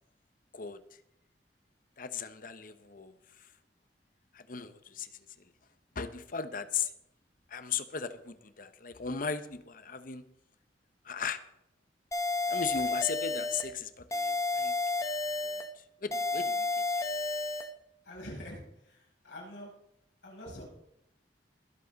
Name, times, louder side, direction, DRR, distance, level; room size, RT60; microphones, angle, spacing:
voice 1, 2.0-3.1 3.4-3.5 4.3-5.1 5.9-6.9 7.5-10.3 11.0-11.4 12.5-14.7 15.1-15.2 15.4-15.6 16.0-17.0, left 6 dB, 50° left, 11 dB, 0.9 m, -37 dB
sound 1, 12.1-13.7 14.1-15.7 16.1-17.7, left 3 dB, 20° left, 1.0 m, -31 dB
voice 2, 18.0-19.7 20.2-20.7, equal, 90° left, -4 dB, 6.6 m, -45 dB
22.5 x 7.6 x 4.1 m, 0.80 s
head